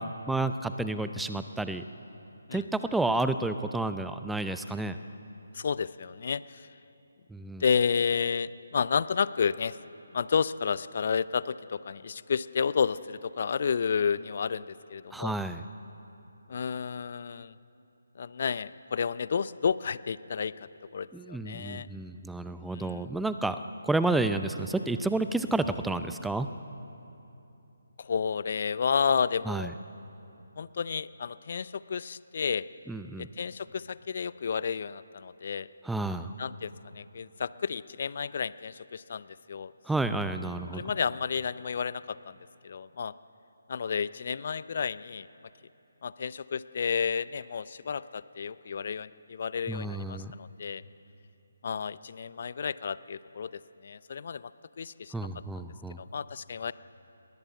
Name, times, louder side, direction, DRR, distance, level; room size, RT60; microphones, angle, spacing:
voice 1, 0.0-1.8 2.5-5.0 7.3-7.6 15.1-15.6 21.1-26.5 29.5-29.7 32.9-33.3 35.8-36.3 39.9-40.8 49.7-50.3 55.1-56.0, right 2 dB, 5° right, 10 dB, 0.5 m, -30 dB
voice 2, 5.5-6.7 7.6-9.8 10.1-15.3 16.5-17.5 18.2-21.9 22.7-23.0 28.0-29.7 30.6-32.6 33.2-35.7 36.4-39.7 40.7-42.4 42.6-43.1 43.7-45.3 46.0-50.8 51.6-54.5 54.8-55.3 56.0-56.7, left 6 dB, 45° left, 17 dB, 0.5 m, -31 dB
20.0 x 19.0 x 8.1 m, 2.9 s
figure-of-eight pair, 145°, 0 cm